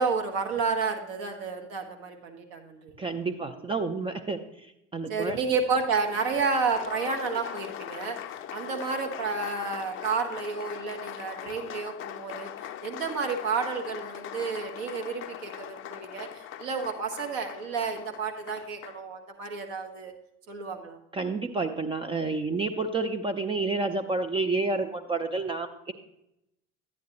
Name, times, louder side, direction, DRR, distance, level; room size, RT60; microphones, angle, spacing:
voice 1, 0.0-3.0 5.1-8.2 8.5-12.5 12.8-20.1 20.5-21.0, right 4 dB, 55° right, 3 dB, 1.5 m, -31 dB
voice 2, 3.0-4.4 4.9-5.4 21.1-25.9, right 3 dB, 15° right, 5 dB, 0.5 m, -29 dB
Applause, 5.8-19.1, left 10 dB, 35° left, 0.5 m, -41 dB
10.5 x 9.3 x 3.0 m, 0.84 s
figure-of-eight pair, 70°, 36 cm